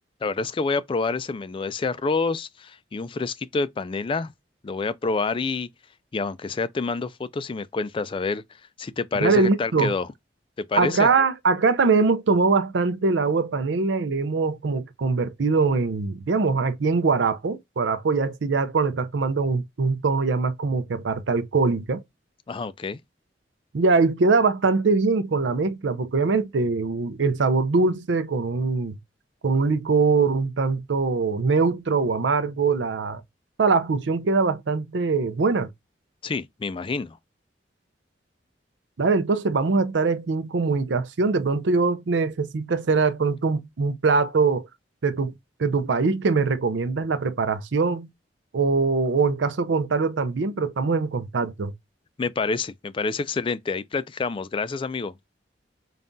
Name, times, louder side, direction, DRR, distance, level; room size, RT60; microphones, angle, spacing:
voice 1, 0.2-4.3 4.6-5.7 6.1-8.4 8.8-10.1 10.6-11.1 22.5-23.0 36.2-37.2 52.2-55.1, left 4 dB, 30° left, 0.3 m, -27 dB
voice 2, 9.2-9.9 10.8-22.0 23.7-29.0 29.4-33.2 33.6-35.7 39.0-44.7 45.0-45.3 45.6-48.1 48.5-51.7, right 4 dB, 90° right, 0.5 m, -22 dB
5.3 x 2.4 x 2.6 m
head